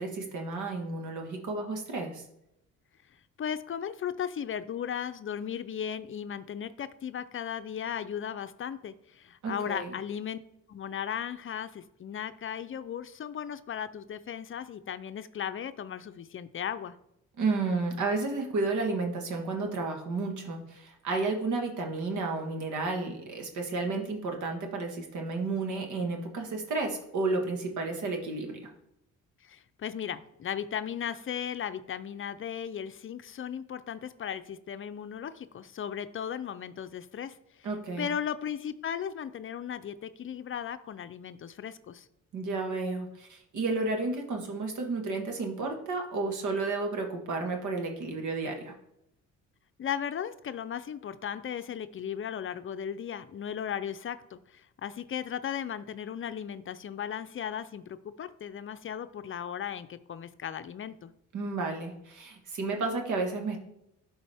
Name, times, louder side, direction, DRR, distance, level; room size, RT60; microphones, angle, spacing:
voice 1, 0.0-2.2 9.4-9.9 17.4-28.6 37.6-38.1 42.3-48.7 61.3-63.6, right 3 dB, 75° right, 3 dB, 1.7 m, -32 dB
voice 2, 3.4-10.4 10.7-17.0 29.4-37.7 38.0-42.1 49.8-61.1, left 8 dB, 45° left, 11 dB, 0.5 m, -36 dB
11.5 x 4.7 x 3.5 m, 0.81 s
cardioid pair, 90°, 30 cm